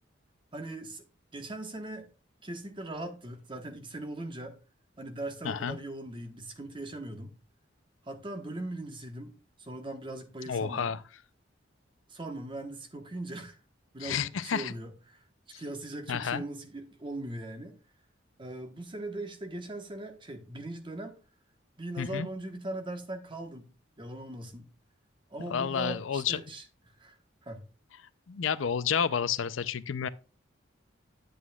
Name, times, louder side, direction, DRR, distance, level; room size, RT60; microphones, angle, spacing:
voice 1, 0.5-1.0 1.3-2.1 2.4-4.5 5.0-7.3 8.1-9.3 9.6-10.9 12.1-13.6 13.9-15.2 15.5-17.7 18.4-21.2 21.8-23.6 24.0-24.7 25.3-26.6 27.0-27.2 27.4-27.6, right 1 dB, 25° right, 1.2 m, -40 dB
voice 2, 5.4-5.8 10.5-11.0 14.0-14.7 15.5-15.6 16.1-16.4 22.0-22.3 25.5-26.4 28.3-30.1, left 7 dB, 90° left, 0.5 m, -30 dB
9.3 x 8.3 x 2.3 m
head